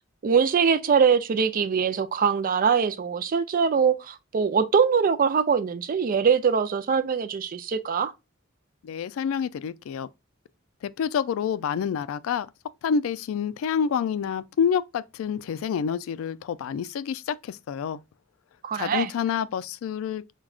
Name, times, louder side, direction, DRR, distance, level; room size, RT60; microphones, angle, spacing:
voice 1, 0.2-8.1 18.6-19.1, right 6 dB, 45° right, 0.4 m, -23 dB
voice 2, 8.8-10.1 10.8-12.5 12.8-18.0 18.7-20.2, left 7 dB, 80° left, 0.3 m, -28 dB
4.8 x 2.2 x 2.3 m
head